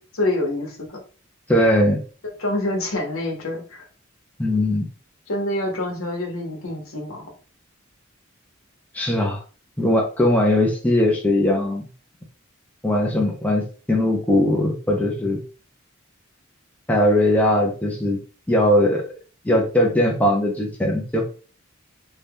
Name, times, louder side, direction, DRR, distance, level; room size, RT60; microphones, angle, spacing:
voice 1, 0.1-1.0 2.4-3.8 5.3-7.3, left 1 dB, 75° left, 2 dB, 0.9 m, -26 dB
voice 2, 1.5-2.0 4.4-4.9 8.9-9.4 9.8-11.8 12.8-15.4 16.9-18.2 18.5-19.0 19.4-21.3, left 1 dB, 5° left, -1 dB, 0.5 m, -19 dB
2.7 x 2.3 x 3.4 m, 0.38 s
head